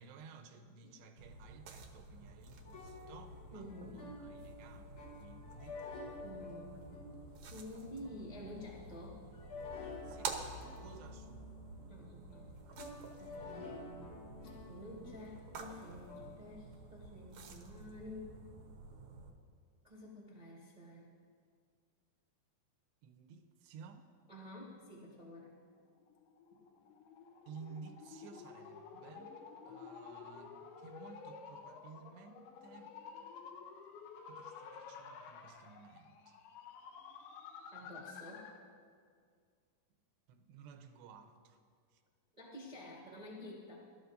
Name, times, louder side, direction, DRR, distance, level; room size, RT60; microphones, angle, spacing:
voice 1, 0.0-5.9 10.0-11.5 23.0-24.1 27.5-29.4 29.7-32.9 34.3-36.4 40.3-41.6 41.9-42.0 42.8-42.9, right 5 dB, 85° right, 6 dB, 3.0 m, -55 dB
sound 1, 1.2-19.3, right 4 dB, 70° right, 1.8 m, -50 dB
sound 2, 2.7-16.4, left 3 dB, 55° left, 2.5 m, -51 dB
voice 2, 3.5-4.1 6.2-6.8 7.5-9.2 11.9-12.5 13.2-14.1 14.7-18.4 19.8-21.1 24.3-25.5 37.7-38.5 42.4-43.7, left 1 dB, 30° right, -6 dB, 0.8 m, -50 dB
sound 3, 26.0-38.7, left 6 dB, 75° left, 2.7 m, -52 dB
24.0 x 13.0 x 2.7 m, 2.1 s
omnidirectional pair, 4.9 m